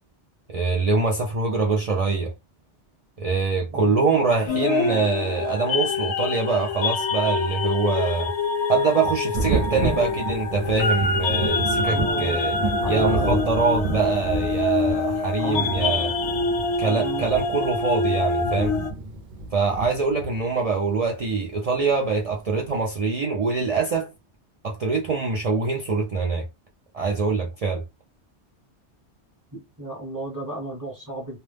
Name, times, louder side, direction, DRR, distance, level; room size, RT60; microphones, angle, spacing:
voice 1, 0.5-2.3 3.2-8.3 8.7-12.5 12.9-16.1 16.8-18.7 19.5-24.1 24.6-26.4 26.9-27.8, right 4 dB, 70° right, 0.3 m, -24 dB
voice 2, 3.7-4.0 11.9-12.4 12.8-13.4 15.4-16.1 16.8-17.3 29.5-31.4, right 1 dB, 20° right, 0.7 m, -33 dB
sound 1, 4.5-18.9, left 4 dB, 80° left, 0.9 m, -26 dB
Thunder, 9.3-20.8 22.1-22.2 22.7-22.8, right 2 dB, 55° right, 0.7 m, -30 dB
2.2 x 2.0 x 3.2 m
omnidirectional pair, 1.2 m